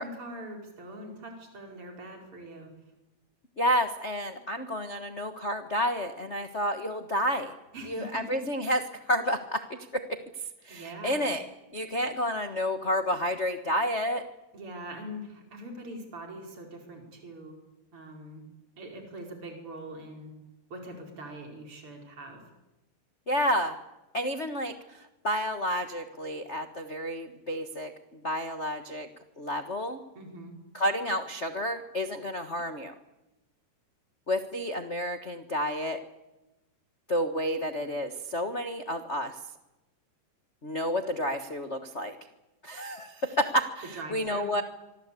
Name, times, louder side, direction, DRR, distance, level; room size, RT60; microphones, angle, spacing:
voice 1, 0.0-2.7 7.7-8.4 10.7-11.3 14.5-17.6 17.9-18.4 18.8-20.3 20.7-22.4 30.2-30.5 43.9-44.5, right 1 dB, 40° right, 2 dB, 5.5 m, -42 dB
voice 2, 3.6-7.5 7.9-8.8 9.1-10.0 10.6-11.4 11.7-14.2 23.3-23.8 24.1-29.1 29.4-30.0 30.7-32.9 34.3-36.0 37.1-39.4 40.6-42.1 42.6-44.6, equal, 70° left, 6 dB, 0.6 m, -30 dB
25.5 x 24.0 x 8.5 m, 0.99 s
omnidirectional pair, 3.9 m